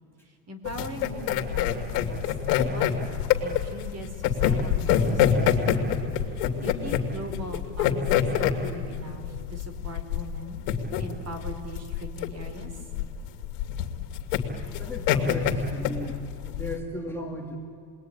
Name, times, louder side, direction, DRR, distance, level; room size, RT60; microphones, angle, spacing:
voice 1, 0.3-2.2 2.6-5.9 6.3-10.6 11.0-12.7, equal, 30° right, 7 dB, 3.7 m, -40 dB
sound 1, 0.6-16.8, left 9 dB, 75° left, 2.6 m, -25 dB
voice 2, 14.8-17.6, left 2 dB, 5° left, 0 dB, 2.3 m, -36 dB
28.5 x 21.0 x 9.8 m, 2.5 s
supercardioid pair, 115°, 49 cm